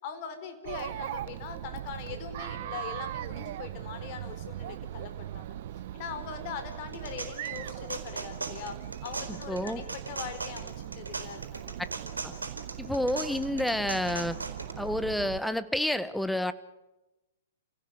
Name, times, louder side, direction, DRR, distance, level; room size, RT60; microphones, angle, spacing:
voice 1, 0.0-5.6 5.9-11.7, left 7 dB, 45° left, 8 dB, 4.6 m, -41 dB
Chatter, 0.6-15.4, right 12 dB, 55° right, 1.1 m, -40 dB
sound 1, 6.7-14.7, right 3 dB, 90° right, 4.4 m, -39 dB
voice 2, 9.3-9.8 12.2-12.3 12.8-14.4 14.8-16.5, left 1 dB, ahead, 14 dB, 1.2 m, -29 dB
29.0 x 17.0 x 8.1 m, 1.0 s
hypercardioid pair, 115°, 0 cm